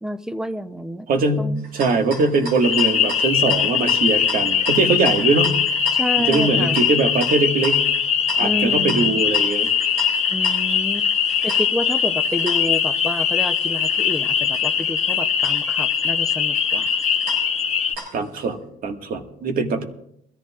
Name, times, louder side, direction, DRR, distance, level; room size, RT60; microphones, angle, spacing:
voice 1, 0.0-1.1 1.4-1.7 5.9-6.8 8.4-9.2 10.3-11.1 11.4-16.9, equal, 5° right, 11 dB, 0.7 m, -29 dB
voice 2, 1.1-5.6 6.3-7.8 8.4-9.7 18.1-18.6 18.8-19.8, right 3 dB, 60° right, 4 dB, 1.9 m, -21 dB
sound 1, 1.6-18.4, right 2 dB, 80° right, 5.9 m, -38 dB
sound 2, 2.6-18.0, left 7 dB, 40° left, 1.1 m, -21 dB
22.5 x 14.0 x 2.5 m, 0.72 s
cardioid pair, 110°, 17 cm